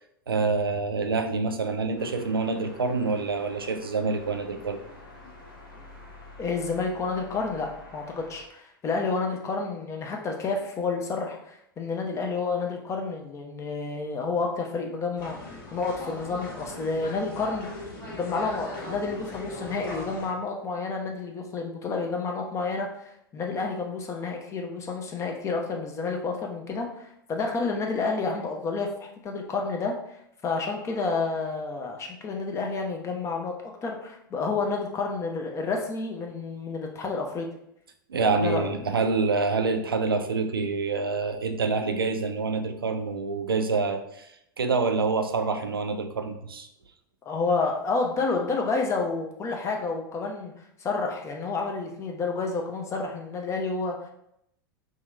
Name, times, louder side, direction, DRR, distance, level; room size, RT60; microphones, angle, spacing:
voice 1, 0.3-4.8 38.1-44.3 44.6-46.7, right 4 dB, 85° right, 6 dB, 0.4 m, -26 dB
sound 1, 2.0-8.4, left 2 dB, 70° left, 0.8 m, -48 dB
voice 2, 6.4-28.9 29.2-29.9 30.4-33.5 33.8-37.5 38.1-38.7 47.3-54.1, left 4 dB, 25° left, 2 dB, 0.6 m, -30 dB
sound 2, 15.2-20.3, left 1 dB, 55° left, 1.3 m, -39 dB
2.8 x 2.5 x 3.2 m, 0.75 s
figure-of-eight pair, 90°, 12 cm